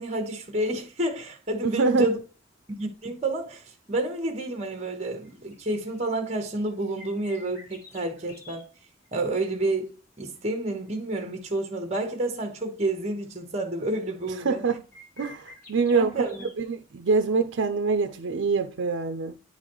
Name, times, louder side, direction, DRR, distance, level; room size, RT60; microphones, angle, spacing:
voice 1, 0.0-2.2 2.7-8.7 9.1-14.6 15.9-16.5, right 2 dB, 35° right, 1.1 m, -30 dB
voice 2, 1.6-2.1 14.4-14.8 15.2-16.1 16.6-19.4, right 4 dB, 70° right, 0.5 m, -24 dB
sound 1, 1.7-2.0 2.8-2.9 3.4-3.8 4.0-4.1 4.4-4.7 5.1-8.6 9.0-9.9 10.3-11.8 12.1-12.2 12.5-13.6 14.2-14.3 14.5-16.5 18.0-18.1 18.7-18.8, left 2 dB, 45° left, 2.9 m, -51 dB
9.6 x 4.0 x 3.0 m
head